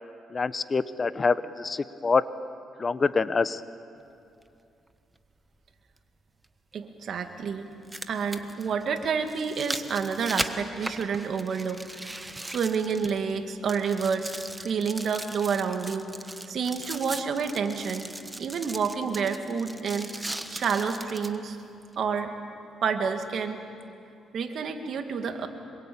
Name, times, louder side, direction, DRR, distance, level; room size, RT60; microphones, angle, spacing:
voice 1, 0.3-2.2 2.8-3.6, left 4 dB, 35° left, 14 dB, 0.8 m, -25 dB
sound 1, 4.4-4.5 6.4-6.5 7.7-13.4 13.7-21.4 21.9-22.0, right 1 dB, 10° right, 1.3 m, -38 dB
voice 2, 6.7-7.7 8.1-11.8 12.5-14.3 14.6-16.1 16.5-18.1 18.4-20.1 20.5-21.6 22.0-22.3 22.8-23.6 24.3-25.5, right 6 dB, 60° right, 6 dB, 2.3 m, -29 dB
26.0 x 22.5 x 8.7 m, 2.5 s
cardioid pair, 90°, 0 cm